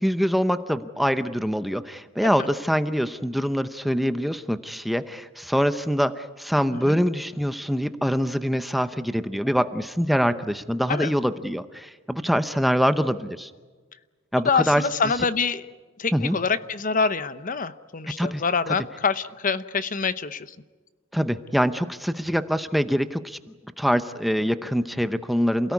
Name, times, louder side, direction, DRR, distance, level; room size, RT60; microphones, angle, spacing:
voice 1, 0.0-13.5 14.3-14.8 16.1-16.4 18.2-18.7 21.1-23.4 23.8-25.7, equal, ahead, 11 dB, 0.7 m, -24 dB
voice 2, 14.4-15.7 16.0-20.5, left 5 dB, 40° left, 14 dB, 0.8 m, -25 dB
28.5 x 17.5 x 9.6 m, 1.4 s
head